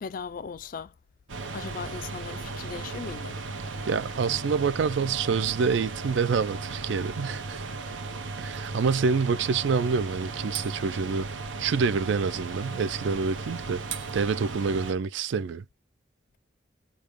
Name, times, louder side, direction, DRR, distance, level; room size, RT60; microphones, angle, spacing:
voice 1, 0.0-0.9 1.5-3.4, left 5 dB, 45° left, 0.3 m, -38 dB
sound 1, 1.3-14.9, right 3 dB, 90° right, 0.8 m, -36 dB
voice 2, 3.9-7.6 8.4-11.3 11.6-13.8 14.1-15.7, right 5 dB, 70° right, 0.4 m, -27 dB
6.4 x 2.3 x 3.5 m
head